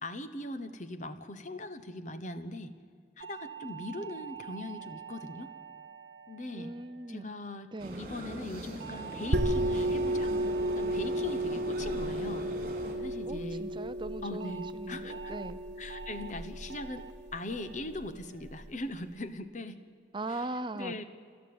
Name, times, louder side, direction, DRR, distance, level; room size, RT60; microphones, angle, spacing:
voice 1, 0.0-2.7 3.2-5.5 6.3-6.7 7.1-7.7 8.0-10.3 10.7-12.5 12.9-13.6 14.2-15.4 15.8-17.1 17.3-19.8 20.7-21.0, left 2 dB, 45° left, 11 dB, 1.1 m, -40 dB
sound 1, 3.2-7.7 8.8-13.3 14.4-14.7 15.1-15.5 15.9-16.3 16.7-17.1 17.5-17.9 18.3-18.7, right 8 dB, 80° right, 0.9 m, -47 dB
voice 2, 6.5-7.3 7.7-8.0 13.2-15.6 20.1-21.0, right 2 dB, 25° right, 12 dB, 0.6 m, -39 dB
sound 2, 7.8-12.9, right 1 dB, 50° right, 4.1 m, -41 dB
sound 3, 9.3-18.7, right 1 dB, 65° right, 1.5 m, -33 dB
28.5 x 12.5 x 8.7 m, 2.3 s
head